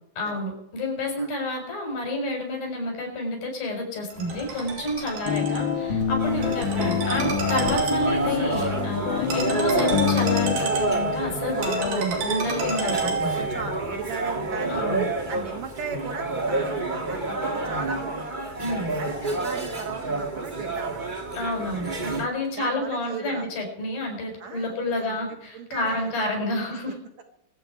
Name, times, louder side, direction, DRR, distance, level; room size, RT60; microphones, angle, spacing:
voice 1, 0.2-13.4 14.7-15.1 18.6-19.0 21.3-27.0, left 1 dB, 85° left, 2 dB, 6.7 m, -29 dB
Ringtone, 4.1-13.7, right 2 dB, 80° right, 4.9 m, -31 dB
voice 2, 5.1-5.5 12.6-14.9 15.3-18.3 19.0-21.1 22.0-22.2 22.6-23.5 24.4-26.1 26.9-27.0, right 5 dB, 60° right, 4 dB, 2.5 m, -37 dB
sound 1, 5.3-10.6, left 7 dB, 55° left, 1.4 m, -26 dB
sound 2, 6.2-22.3, right 2 dB, 40° right, 0.7 m, -29 dB
25.0 x 8.6 x 4.7 m, 0.79 s
omnidirectional pair, 4.0 m